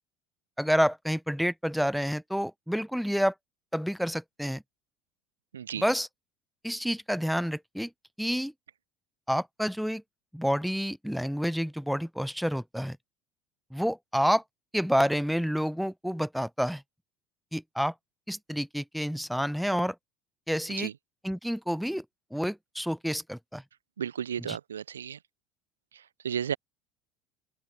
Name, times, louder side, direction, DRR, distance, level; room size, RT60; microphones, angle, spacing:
voice 1, 0.6-3.3 3.7-4.6 5.8-6.1 6.6-7.9 8.2-8.5 9.3-10.0 10.3-13.0 13.7-14.4 14.7-16.8 17.5-17.9 18.3-20.0 20.5-20.9 21.2-22.0 22.3-23.6 24.4-24.6, equal, ahead, 0.7 m, -29 dB
voice 2, 5.5-5.8 20.8-20.9 24.0-25.2 25.9-26.6, right 8 dB, 75° right, 0.9 m, -33 dB
open air
figure-of-eight pair, 65°, 0 cm